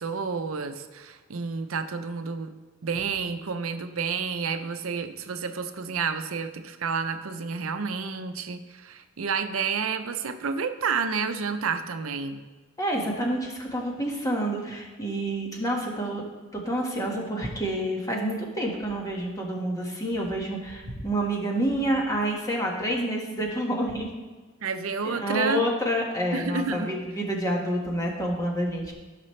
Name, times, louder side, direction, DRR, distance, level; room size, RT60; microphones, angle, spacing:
voice 1, 0.0-2.5 2.8-12.4 24.6-25.6 26.3-26.9, right 5 dB, 85° right, 9 dB, 0.7 m, -30 dB
voice 2, 12.8-16.2 16.5-24.1 25.0-28.9, right 1 dB, 15° left, -1 dB, 1.5 m, -28 dB
15.0 x 6.0 x 3.2 m, 1.3 s
head